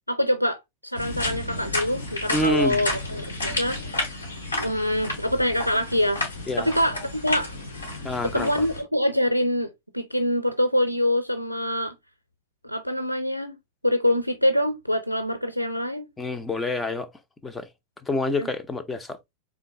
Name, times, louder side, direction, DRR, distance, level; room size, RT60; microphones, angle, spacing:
voice 1, 0.1-4.1 4.6-6.3 6.6-7.5 8.2-11.9 12.6-13.6 13.8-16.1 18.4-18.5, left 1 dB, 90° right, 0.4 m, -25 dB
sound 1, 0.9-8.8, left 2 dB, 80° left, 2.6 m, -31 dB
voice 2, 2.3-2.8 6.5-6.7 8.0-8.7 16.2-17.1 17.4-17.7 18.0-19.2, left 2 dB, 10° left, 0.6 m, -27 dB
3.8 x 3.7 x 3.2 m
figure-of-eight pair, 90°, 0 cm